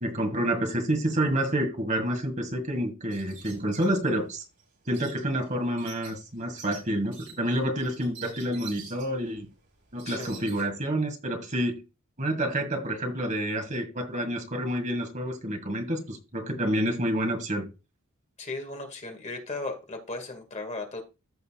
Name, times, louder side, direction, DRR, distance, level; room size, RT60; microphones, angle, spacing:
voice 1, 0.0-4.4 4.9-9.5 9.9-11.8 12.2-17.7, right 1 dB, 35° right, 5 dB, 1.9 m, -28 dB
sound 1, 3.1-10.6, right 6 dB, 60° right, 4.0 m, -48 dB
voice 2, 10.0-10.5 18.4-21.0, left 3 dB, 35° left, 4 dB, 1.9 m, -36 dB
14.5 x 5.5 x 2.3 m, 0.28 s
head